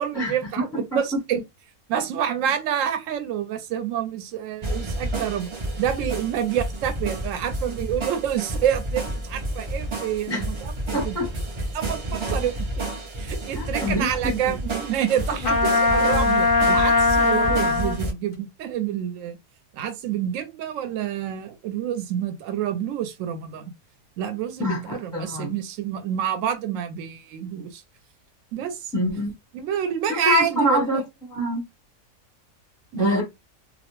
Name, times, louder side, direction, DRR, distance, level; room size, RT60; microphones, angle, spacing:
voice 1, 0.0-1.4 1.9-5.5 5.8-11.2 11.7-12.9 13.2-19.4 19.7-23.7 24.2-27.8 28.5-28.9 29.5-31.0 32.9-33.2, right 9 dB, 70° right, 0.9 m, -28 dB
sound 1, 4.6-18.1, right 1 dB, 50° right, 0.3 m, -30 dB
voice 2, 10.9-11.3 13.5-14.5 24.6-25.5 28.9-29.3 30.1-31.0 31.3-31.6 32.9-33.2, left 1 dB, 5° left, 0.6 m, -25 dB
Trumpet, 15.4-18.0, left 3 dB, 50° left, 0.6 m, -20 dB
2.4 x 2.0 x 2.9 m
omnidirectional pair, 1.5 m